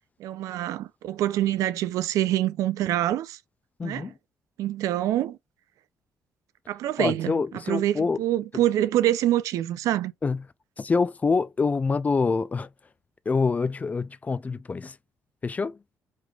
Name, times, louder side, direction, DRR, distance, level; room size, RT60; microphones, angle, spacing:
voice 1, 0.2-3.4 3.8-4.1 4.6-5.4 6.7-7.3 7.7-10.1, right 13 dB, 80° right, 0.4 m, -25 dB
voice 2, 3.8-4.1 7.0-8.2 10.2-10.4 10.8-12.7 13.3-15.0 15.4-15.8, left 4 dB, 30° left, 0.3 m, -26 dB
3.2 x 3.1 x 2.3 m
cardioid pair, 75°, 6 cm